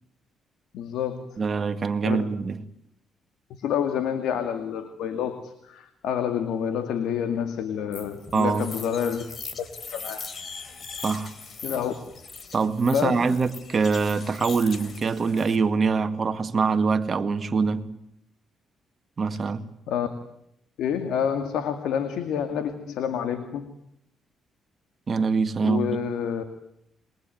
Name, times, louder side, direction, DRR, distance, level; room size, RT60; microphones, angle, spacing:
voice 1, 0.7-1.3 2.0-2.2 3.6-9.2 9.6-10.3 11.6-11.9 12.8-13.3 19.9-20.1 20.8-23.7 25.6-26.4, left 8 dB, 80° left, 2.3 m, -28 dB
voice 2, 1.4-2.6 8.3-8.7 11.0-11.3 12.5-17.9 19.2-19.7 25.1-26.0, right 4 dB, 40° right, 2.2 m, -24 dB
sound 1, 7.9-15.5, left 5 dB, 45° left, 3.4 m, -40 dB
28.0 x 22.5 x 9.4 m
cardioid pair, 90°, 0 cm